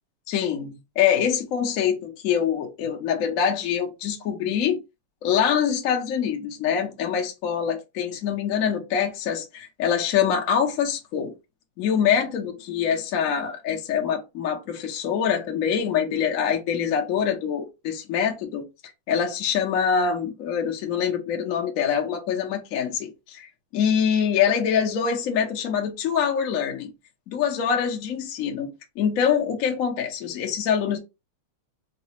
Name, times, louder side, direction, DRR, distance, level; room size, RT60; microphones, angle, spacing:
voice 1, 0.3-4.8 5.2-11.3 11.8-26.9 27.3-31.0, left 8 dB, 65° left, 0.8 m, -25 dB
4.0 x 2.2 x 2.8 m
omnidirectional pair, 2.2 m